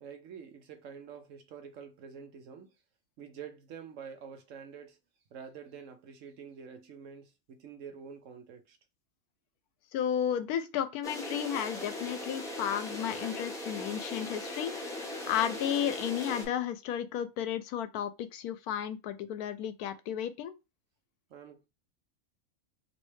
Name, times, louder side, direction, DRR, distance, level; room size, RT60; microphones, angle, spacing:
voice 1, 0.0-2.7 3.2-5.0 5.3-8.8 21.3-21.7, right 7 dB, 65° right, 0.9 m, -47 dB
voice 2, 9.9-20.5, left 9 dB, 80° left, 1.1 m, -33 dB
sound 1, 11.0-16.4, left 1 dB, 5° left, 0.7 m, -39 dB
3.1 x 2.9 x 3.1 m
omnidirectional pair, 1.6 m